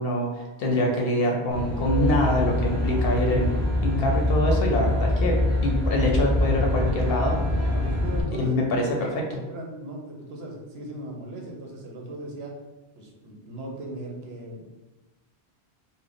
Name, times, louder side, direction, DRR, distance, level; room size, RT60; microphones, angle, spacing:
voice 1, 0.0-3.5 3.8-7.4 8.4-9.1, left 1 dB, 70° left, 0 dB, 0.8 m, -25 dB
Aircraft, 1.5-8.2, left 1 dB, 15° right, 0.8 m, -24 dB
voice 2, 8.0-12.5 13.0-14.7, right 1 dB, 70° right, 0 dB, 0.9 m, -38 dB
3.2 x 2.0 x 3.8 m, 1.1 s
omnidirectional pair, 1.1 m